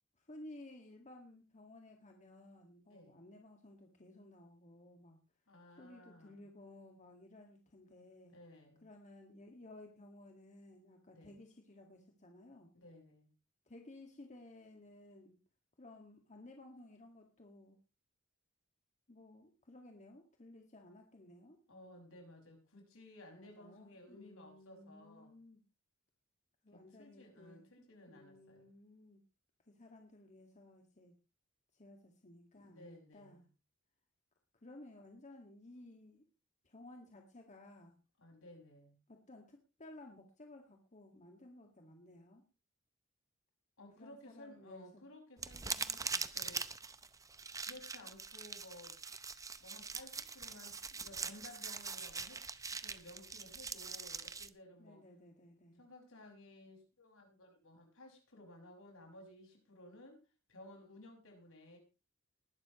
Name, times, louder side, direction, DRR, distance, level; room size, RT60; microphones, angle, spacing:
voice 1, 0.2-5.2 5.8-8.4 8.8-12.7 13.7-15.4 15.8-17.8 19.1-21.6 23.4-25.6 26.6-29.2 29.7-31.2 31.7-33.4 34.6-36.2 36.6-38.0 39.1-42.4 44.0-45.0 54.8-55.8, left 1 dB, 35° left, 2 dB, 1.9 m, -56 dB
voice 2, 5.5-6.5 8.3-8.9 11.1-11.4 12.7-13.3 21.7-25.4 26.7-28.7 32.5-33.5 38.2-39.0 43.8-46.6 47.6-49.0 49.6-52.4 52.8-55.0 55.7-60.2 60.5-61.8, left 1 dB, 70° left, 2 dB, 5.9 m, -57 dB
sound 1, 45.4-54.5, right 5 dB, 15° right, 0.7 m, -43 dB
20.0 x 12.0 x 3.1 m, 0.30 s
head